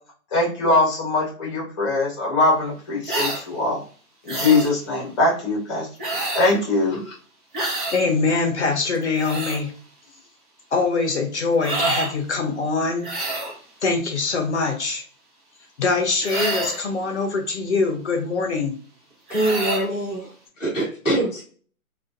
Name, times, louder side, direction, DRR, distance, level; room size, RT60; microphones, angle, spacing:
voice 1, 0.3-3.8 4.2-5.9 6.3-7.1, left 2 dB, 20° left, -2 dB, 0.9 m, -21 dB
sound 1, 3.1-3.4 4.3-4.7 6.0-6.6 7.5-8.0 8.9-9.6 11.6-12.1 13.0-13.6 16.2-16.9 19.3-19.9, right 2 dB, 35° right, 1.0 m, -27 dB
voice 2, 7.9-9.7 10.7-13.1 13.8-15.0 15.8-18.7, left 4 dB, 50° left, 4 dB, 0.7 m, -23 dB
voice 3, 19.3-21.4, right 1 dB, 5° right, -23 dB, 0.6 m, -24 dB
3.3 x 2.4 x 2.5 m, 0.43 s
hypercardioid pair, 160°, 44 cm